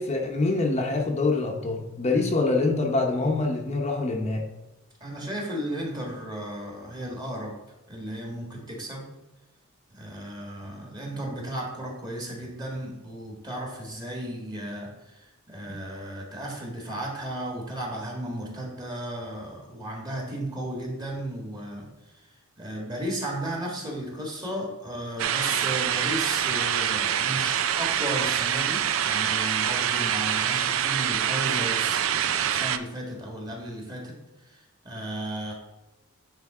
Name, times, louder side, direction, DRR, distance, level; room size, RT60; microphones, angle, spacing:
voice 1, 0.0-4.4 15.7-15.8, left 3 dB, 30° left, 1 dB, 0.8 m, -25 dB
voice 2, 5.0-7.6 7.9-9.1 9.9-21.9 22.6-34.2 34.5-35.5, right 1 dB, 20° right, -1 dB, 1.8 m, -34 dB
sound 1, 25.2-32.8, right 9 dB, 65° right, 0.4 m, -25 dB
9.6 x 3.4 x 4.9 m, 1.0 s
head